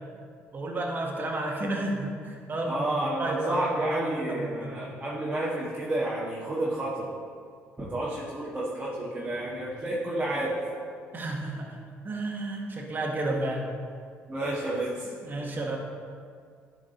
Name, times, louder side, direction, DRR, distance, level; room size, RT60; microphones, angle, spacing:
voice 1, 0.5-4.8 11.1-13.7 15.0-15.8, right 2 dB, 35° right, 0 dB, 1.7 m, -32 dB
voice 2, 2.7-7.1 7.8-10.5 14.3-15.0, right 1 dB, 20° right, -7 dB, 1.7 m, -30 dB
11.0 x 4.9 x 4.0 m, 2.1 s
supercardioid pair, 70°, 5 cm